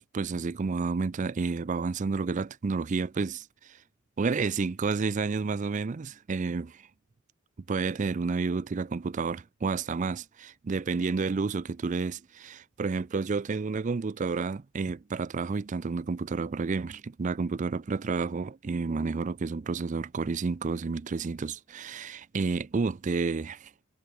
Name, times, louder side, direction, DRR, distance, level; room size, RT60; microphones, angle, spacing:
voice 1, 0.0-3.8 4.2-6.9 7.7-23.7, right 4 dB, 40° right, 0.4 m, -30 dB
head